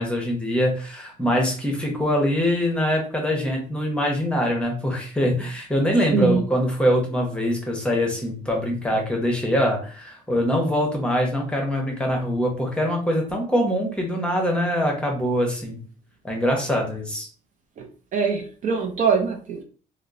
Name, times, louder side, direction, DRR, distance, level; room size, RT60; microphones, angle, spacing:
voice 1, 0.0-15.8 16.2-17.3, equal, 5° left, 0 dB, 0.7 m, -23 dB
voice 2, 18.1-19.6, right 5 dB, 50° right, 4 dB, 0.5 m, -22 dB
2.8 x 2.0 x 2.4 m, 0.40 s
cardioid pair, 110°, 17 cm